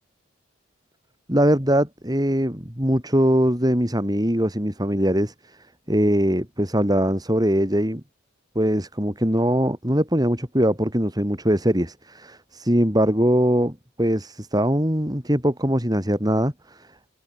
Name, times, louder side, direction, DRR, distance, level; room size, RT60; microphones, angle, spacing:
voice 1, 1.3-5.6 5.9-8.0 8.5-16.9, equal, 20° right, 4.5 m, -22 dB
head